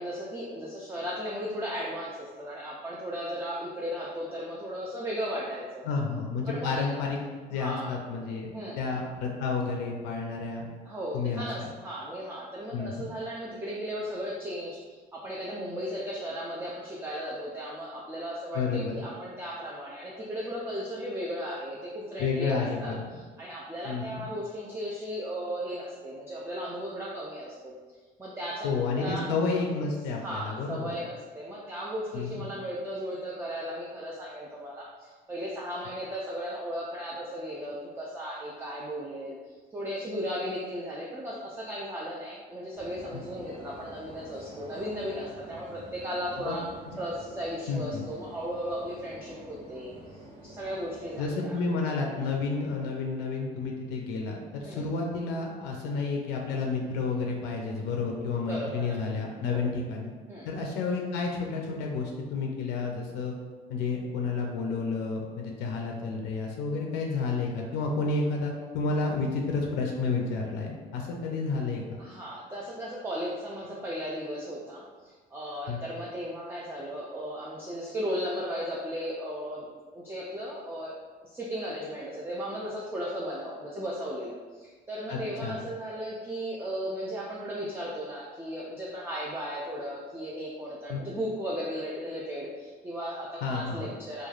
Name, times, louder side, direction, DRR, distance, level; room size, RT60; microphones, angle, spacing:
voice 1, 0.0-5.8 6.5-6.9 7.5-7.9 8.5-8.8 10.8-27.7 28.2-28.7 29.0-29.3 30.2-46.7 47.0-49.9 50.4-51.6 52.2-52.3 54.6-54.8 58.4-59.0 59.5-59.7 60.3-60.5 72.0-79.7 79.9-80.9 81.2-94.3, equal, 15° right, -4 dB, 0.4 m, -36 dB
voice 2, 5.8-7.2 7.5-10.7 11.1-11.7 12.7-13.1 18.5-19.0 22.2-22.9 23.8-24.3 28.6-30.9 32.1-32.4 43.1-43.2 46.4-46.6 46.9-47.0 47.7-48.0 51.2-60.1 60.4-63.4 63.7-72.0 75.7-75.8 85.1-85.6 90.9-91.0 93.4-93.9, left 4 dB, 90° left, 0 dB, 0.4 m, -31 dB
sound 1, 42.7-51.3, right 1 dB, 30° right, 0.8 m, -48 dB
3.0 x 2.3 x 2.3 m, 1.4 s
cardioid pair, 110°, 17 cm